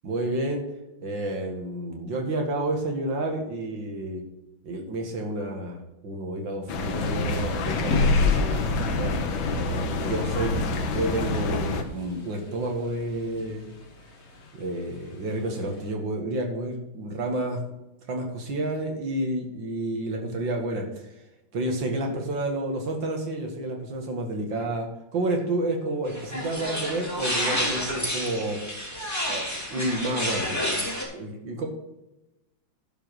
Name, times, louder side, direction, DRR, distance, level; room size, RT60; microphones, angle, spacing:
voice 1, 0.0-0.6 1.0-4.2 4.6-9.1 9.6-10.6 10.9-13.6 14.5-17.6 18.1-21.1 21.5-28.6 29.3-31.7, right 1 dB, 65° right, 2 dB, 2.5 m, -30 dB
sound 1, 6.7-11.8, left 3 dB, 75° left, 1.8 m, -26 dB
Thunder / Rain, 6.9-15.9, left 3 dB, 40° left, 1.3 m, -39 dB
sound 2, 26.1-31.0, equal, 10° left, 2.0 m, -29 dB
11.5 x 5.4 x 6.4 m, 0.95 s
omnidirectional pair, 2.2 m